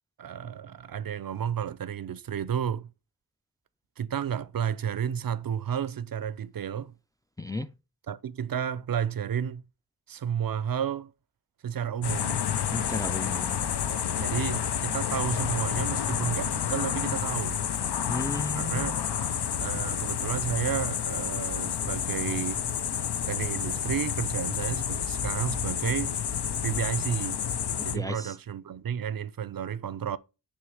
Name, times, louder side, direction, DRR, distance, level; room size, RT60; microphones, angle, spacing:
voice 1, 0.2-2.9 4.0-6.9 8.1-9.6 10.1-11.1 11.6-12.5 14.2-17.7 18.5-19.0 19.5-22.6 23.3-26.2 26.6-27.4 27.8-30.2, right 8 dB, 55° right, 0.5 m, -32 dB
voice 2, 7.4-7.7 12.7-13.7 18.1-18.9 27.8-28.3, left 1 dB, 10° left, 0.3 m, -34 dB
sound 1, 12.0-28.0, left 8 dB, 70° left, 0.5 m, -30 dB
6.3 x 3.2 x 4.8 m
wide cardioid pair, 45°, 42 cm